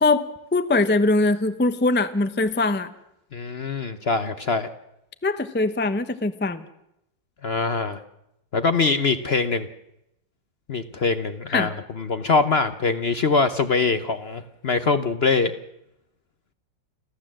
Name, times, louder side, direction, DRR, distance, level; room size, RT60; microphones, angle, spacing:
voice 1, 0.0-2.9 5.2-6.6 11.5-11.7, left 2 dB, 10° left, 11 dB, 0.5 m, -22 dB
voice 2, 3.3-4.7 7.4-8.0 8.5-9.7 10.7-15.5, left 4 dB, 50° left, 10 dB, 0.8 m, -23 dB
29.0 x 12.0 x 7.6 m, 0.84 s
omnidirectional pair, 1.9 m